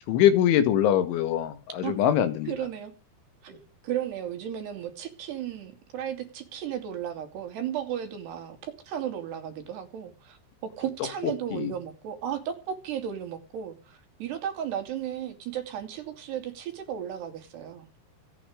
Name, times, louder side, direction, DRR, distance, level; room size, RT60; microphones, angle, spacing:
voice 1, 0.1-2.5 11.5-11.7, left 10 dB, 80° left, 4.1 m, -23 dB
voice 2, 2.5-2.9 3.4-17.9, right 10 dB, 65° right, 4.4 m, -35 dB
27.0 x 9.2 x 5.0 m
omnidirectional pair, 5.4 m